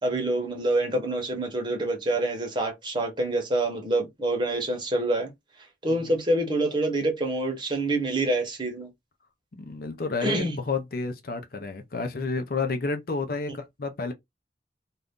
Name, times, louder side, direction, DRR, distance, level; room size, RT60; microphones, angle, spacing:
voice 1, 0.0-5.3 5.8-8.9 10.2-10.5, right 2 dB, 25° right, 1.0 m, -26 dB
voice 2, 9.5-14.1, left 4 dB, 55° left, 0.6 m, -30 dB
2.7 x 2.5 x 3.5 m
head